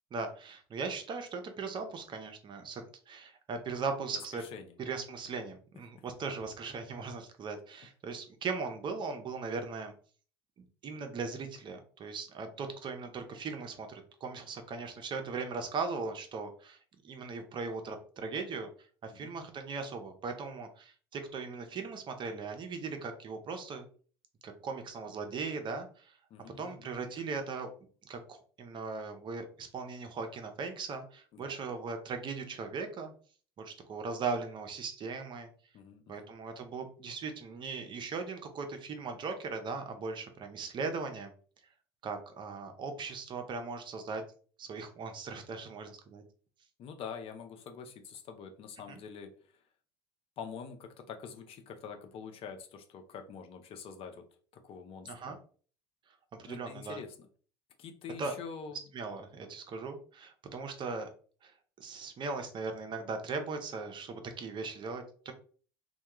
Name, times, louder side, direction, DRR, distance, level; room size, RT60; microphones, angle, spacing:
voice 1, 0.1-4.4 4.8-9.9 10.8-16.8 17.0-18.7 19.0-23.8 24.4-26.2 26.6-27.7 28.0-33.1 33.6-35.5 36.1-41.3 42.0-44.2 44.6-46.2 48.9-49.0 55.0-55.4 56.4-57.0 58.2-58.4 58.9-61.1 61.4-61.5 61.8-65.3, right 4 dB, 40° right, 5 dB, 0.6 m, -39 dB
voice 2, 4.3-4.8 19.1-19.3 26.3-26.9 31.3-31.5 35.7-36.3 46.8-49.3 50.4-54.2 54.5-55.4 56.5-57.2 57.8-58.8, left 6 dB, 50° left, 5 dB, 0.6 m, -45 dB
2.2 x 2.2 x 2.9 m, 0.42 s
hypercardioid pair, 75°, 12 cm